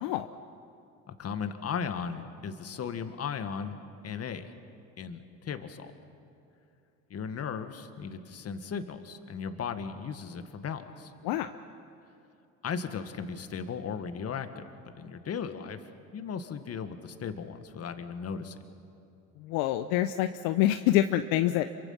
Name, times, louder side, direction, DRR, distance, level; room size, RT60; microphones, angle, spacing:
voice 1, 1.1-4.5 5.0-5.9 7.1-11.1 12.6-15.8 16.1-18.6, left 6 dB, 40° left, 9 dB, 1.8 m, -36 dB
voice 2, 19.4-21.6, left 13 dB, 65° left, 9 dB, 0.8 m, -26 dB
27.0 x 24.0 x 5.8 m, 2.7 s
hypercardioid pair, 80°, 37 cm